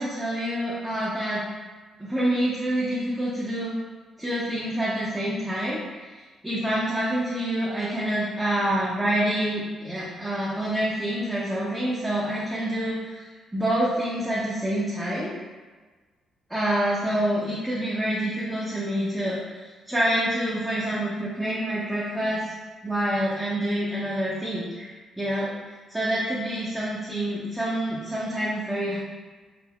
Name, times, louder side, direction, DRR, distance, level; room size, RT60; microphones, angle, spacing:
voice 1, 0.0-1.5 2.0-3.8 4.2-6.2 6.4-15.3 16.5-22.4 22.8-25.5 25.9-29.0, right 1 dB, 10° right, -8 dB, 0.6 m, -27 dB
3.3 x 2.1 x 2.3 m, 1.3 s
cardioid pair, 90°, 0 cm